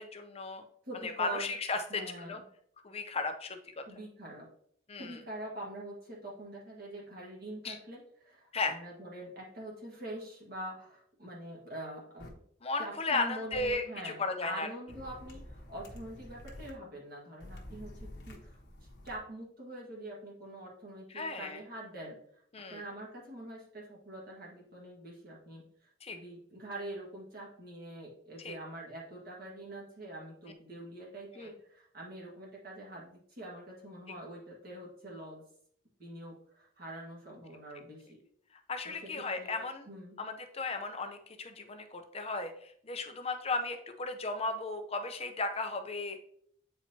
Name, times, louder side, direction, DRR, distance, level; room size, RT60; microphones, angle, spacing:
voice 1, 0.1-0.6 1.0-2.4 2.8-3.8 4.9-5.2 7.6-7.8 8.5-8.7 12.6-14.7 21.1-21.6 22.5-22.8 26.0-26.2 28.4-28.5 31.4-31.5 38.7-39.9 40.2-46.2, left 3 dB, 30° left, 6 dB, 0.6 m, -35 dB
voice 2, 0.9-1.5 1.9-2.4 3.9-4.5 5.0-12.3 12.8-18.6 19.0-22.2 22.7-35.4 36.0-38.1 38.9-39.6 39.9-40.2, right 1 dB, 50° right, -4 dB, 1.7 m, -45 dB
sound 1, 12.2-12.3 13.5-13.7 14.9-16.7 17.4-19.1, left 1 dB, 60° left, 1.2 m, -48 dB
8.6 x 4.4 x 2.8 m, 0.65 s
head